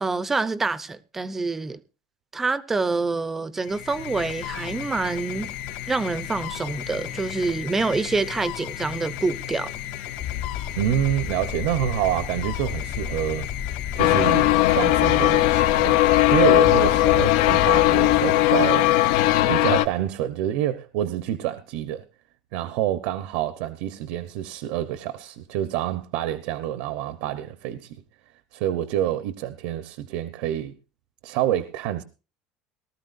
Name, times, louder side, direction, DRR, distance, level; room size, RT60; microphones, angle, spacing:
voice 1, 0.0-1.8 2.3-5.5 5.9-9.7, right 3 dB, 10° right, 0.5 m, -26 dB
sound 1, 3.6-20.1, left 11 dB, 65° left, 2.5 m, -35 dB
sound 2, 10.2-18.2, left 10 dB, 40° left, 1.0 m, -33 dB
voice 2, 10.8-13.5 13.9-18.9 19.5-22.0 22.5-28.0 28.5-30.7 31.2-32.0, right 12 dB, 70° right, 0.9 m, -27 dB
sound 3, 14.0-19.9, left 16 dB, 90° left, 0.7 m, -18 dB
18.5 x 13.0 x 2.6 m
cardioid pair, 175°, 3 cm